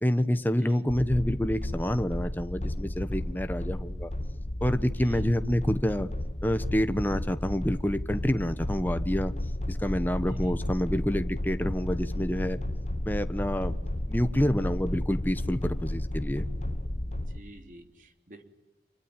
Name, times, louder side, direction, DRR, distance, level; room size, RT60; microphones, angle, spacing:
voice 1, 0.0-4.1 4.6-6.1 6.4-9.3 9.7-12.6 13.1-13.7 14.1-16.5, equal, 10° left, 10 dB, 1.2 m, -28 dB
sound 1, 0.9-17.4, left 1 dB, 40° left, 1.1 m, -33 dB
voice 2, 5.0-5.3 10.3-10.5 17.1-18.4, right 1 dB, 45° right, 7 dB, 3.5 m, -50 dB
28.5 x 23.5 x 9.0 m, 0.95 s
head